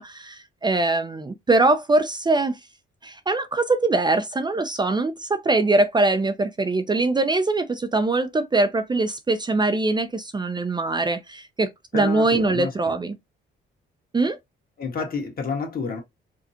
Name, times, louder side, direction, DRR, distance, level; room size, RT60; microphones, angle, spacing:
voice 1, 0.0-2.6 3.0-13.1 14.1-14.4, right 2 dB, 20° right, 0.6 m, -22 dB
voice 2, 11.9-12.9 14.8-16.0, left 5 dB, 50° left, 1.7 m, -29 dB
5.0 x 2.4 x 2.9 m
cardioid pair, 90°, 20 cm